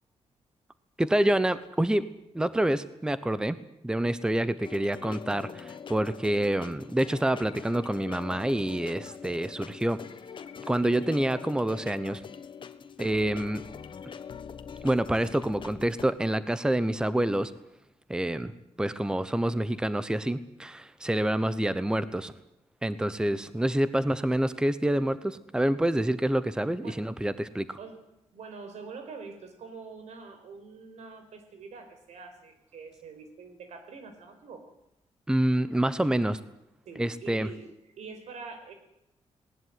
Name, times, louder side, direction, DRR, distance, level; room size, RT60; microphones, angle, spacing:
voice 1, 1.0-2.0 2.3-3.6 3.8-10.0 10.7-12.2 13.0-13.6 14.8-17.5 18.1-18.5 18.8-22.3 22.8-27.8 35.3-36.4 37.0-37.5, right 1 dB, 5° right, 15 dB, 1.0 m, -27 dB
sound 1, 4.6-16.0, left 7 dB, 45° left, 1.4 m, -43 dB
voice 2, 28.3-34.7 36.8-37.7 38.0-38.7, right 4 dB, 80° right, 8 dB, 5.1 m, -45 dB
19.5 x 19.5 x 9.6 m, 0.84 s
wide cardioid pair, 135°, 11 cm